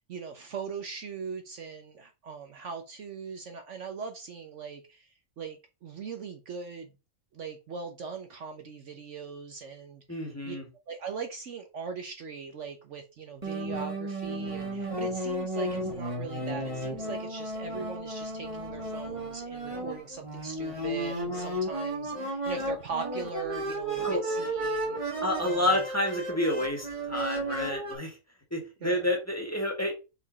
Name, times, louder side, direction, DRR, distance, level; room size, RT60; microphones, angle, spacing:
voice 1, 0.1-6.9 7.3-10.6 10.9-25.8 28.8-29.1, right 5 dB, 60° right, 5 dB, 1.1 m, -40 dB
voice 2, 10.1-10.7 24.0-24.2 25.2-28.2 28.5-30.0, left 1 dB, 10° left, 0 dB, 1.9 m, -29 dB
sound 1, 13.4-27.9, right 1 dB, 20° right, 1.7 m, -33 dB
4.9 x 4.8 x 4.1 m, 0.29 s
omnidirectional pair, 1.5 m